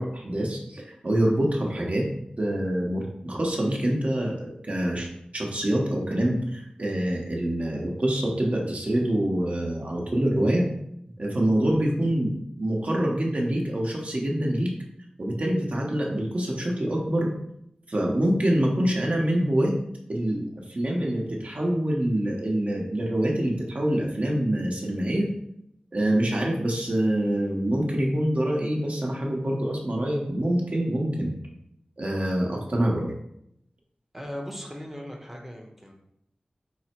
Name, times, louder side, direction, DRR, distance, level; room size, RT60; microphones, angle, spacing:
voice 1, 0.0-2.1 2.4-5.1 5.3-10.7 11.2-14.7 15.2-17.3 17.9-19.7 20.1-25.3 25.9-31.3 32.0-33.1, right 1 dB, 55° right, -1 dB, 0.9 m, -25 dB
voice 2, 34.1-35.9, equal, 5° right, 0 dB, 0.7 m, -38 dB
4.0 x 2.1 x 4.3 m, 0.76 s
cardioid pair, 40°, 3 cm